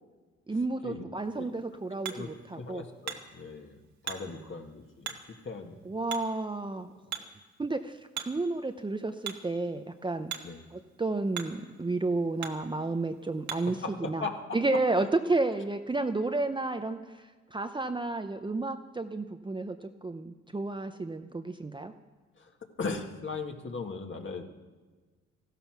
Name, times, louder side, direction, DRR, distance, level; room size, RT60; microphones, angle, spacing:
voice 1, 0.5-2.9 5.8-6.9 7.6-10.3 10.7-14.3 14.5-17.2 17.5-21.9, right 2 dB, 15° right, 7 dB, 0.7 m, -31 dB
Hammer, 1.2-13.8, right 8 dB, 70° right, 1.5 m, -45 dB
voice 2, 2.6-5.2 5.4-5.8 6.8-6.9 10.4-10.6 13.8-14.6 22.4-22.5 22.8-24.5, left 4 dB, 40° left, 4 dB, 1.9 m, -38 dB
15.0 x 12.5 x 6.0 m, 1.3 s
cardioid pair, 90°, 30 cm